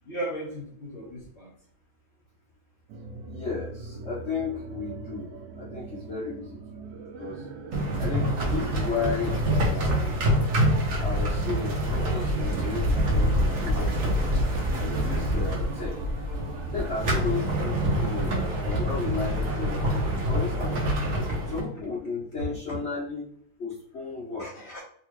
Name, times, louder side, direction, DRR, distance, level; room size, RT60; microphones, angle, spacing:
voice 1, 0.0-1.5 22.7-22.8 24.4-24.8, right 1 dB, 45° left, -4 dB, 0.9 m, -36 dB
sound 1, 2.9-18.4, right 2 dB, 75° right, 1.0 m, -38 dB
voice 2, 3.2-6.6 6.9-7.5 8.0-10.3 11.0-14.4 14.8-16.1 16.7-20.8 21.4-23.3 23.6-24.5, left 5 dB, 75° left, -7 dB, 0.6 m, -34 dB
sound 2, 7.7-21.6, equal, 50° right, 1.0 m, -26 dB
3.5 x 2.7 x 3.0 m, 0.63 s
omnidirectional pair, 2.3 m